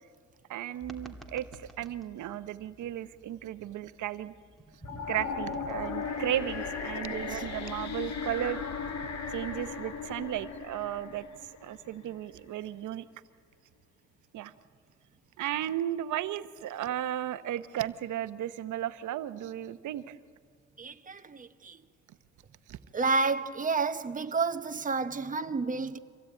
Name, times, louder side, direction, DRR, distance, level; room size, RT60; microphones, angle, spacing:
voice 1, 0.5-4.3 5.1-8.6 9.3-11.2 11.6-13.0 14.3-14.5 15.4-20.2 22.7-22.8, right 12 dB, 75° right, 1.0 m, -35 dB
sound 1, 0.8-7.7, right 1 dB, ahead, 2.3 m, -49 dB
sound 2, 4.8-11.9, left 5 dB, 60° left, 1.9 m, -37 dB
voice 2, 7.1-7.4 20.8-21.8 22.9-26.0, right 4 dB, 25° right, 1.1 m, -30 dB
25.5 x 17.0 x 8.8 m
cardioid pair, 90°, 30 cm